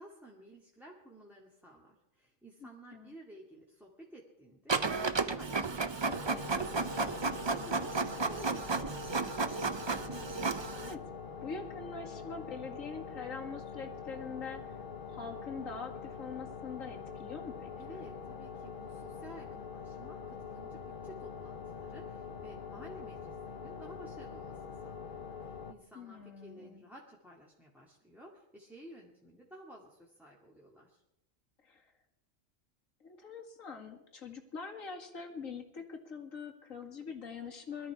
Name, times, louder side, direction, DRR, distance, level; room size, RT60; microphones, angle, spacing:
voice 1, 0.0-9.2 17.8-31.0, right 1 dB, ahead, -3 dB, 2.2 m, -53 dB
voice 2, 2.6-3.1 10.7-11.0 11.4-18.0 25.9-26.8 31.6-31.9 33.0-37.9, left 5 dB, 75° left, 2 dB, 2.4 m, -44 dB
Printer, 4.7-10.9, right 4 dB, 30° right, 0.5 m, -33 dB
sound 1, 6.1-25.7, left 6 dB, 45° left, 1.0 m, -44 dB
22.5 x 13.5 x 4.8 m, 0.86 s
omnidirectional pair, 1.4 m